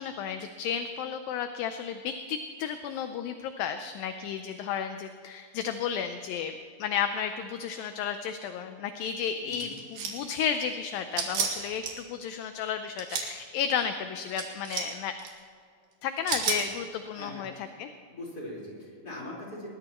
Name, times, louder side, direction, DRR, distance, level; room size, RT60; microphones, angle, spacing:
voice 1, 0.0-6.5 6.8-15.1 16.0-17.9, left 7 dB, 80° left, 8 dB, 2.3 m, -33 dB
sound 1, 9.5-10.3 11.2-11.9 12.8-13.3 14.4-14.9 15.2-15.3 16.3-16.6, right 6 dB, 70° right, 3.7 m, -30 dB
voice 2, 17.1-17.5 18.1-19.7, left 1 dB, 25° left, -4 dB, 4.6 m, -41 dB
20.5 x 20.0 x 3.0 m, 2.3 s
omnidirectional pair, 4.4 m